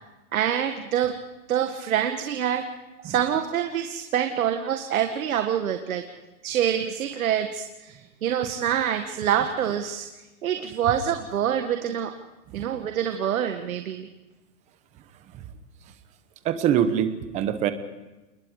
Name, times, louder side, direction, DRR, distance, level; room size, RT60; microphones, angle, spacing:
voice 1, 0.3-1.2 1.5-2.7 3.0-6.0 6.4-10.1 10.4-12.1 12.5-14.1, right 9 dB, 60° right, 6 dB, 1.9 m, -26 dB
voice 2, 16.4-17.7, right 9 dB, 15° right, 10 dB, 1.0 m, -24 dB
29.0 x 21.0 x 5.0 m, 1.1 s
hypercardioid pair, 160°, 47 cm